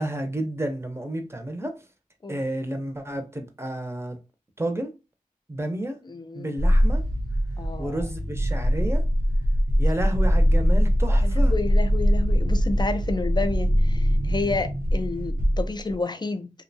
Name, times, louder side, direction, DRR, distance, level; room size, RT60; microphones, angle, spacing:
voice 1, 0.0-1.8 2.3-4.2 4.6-4.9 5.5-6.0 6.3-7.1 7.8-9.1 9.8-11.5, right 1 dB, 15° right, 0.6 m, -31 dB
voice 2, 6.0-6.6 7.6-8.0 11.2-16.5, left 3 dB, 30° left, 0.4 m, -30 dB
sound 1, 6.6-15.9, equal, 90° right, 0.8 m, -22 dB
2.6 x 2.2 x 2.6 m
cardioid pair, 40°, 15 cm